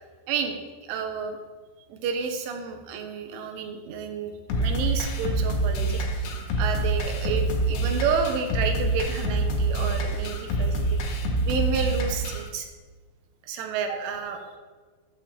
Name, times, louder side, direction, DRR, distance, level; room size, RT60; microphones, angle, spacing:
voice 1, 0.3-1.4 1.9-6.3 6.6-12.7 13.5-14.4, right 6 dB, 75° right, 4 dB, 3.7 m, -30 dB
sound 1, 4.5-12.5, right 2 dB, 70° left, 3.4 m, -26 dB
13.0 x 6.0 x 7.5 m, 1.4 s
omnidirectional pair, 5.8 m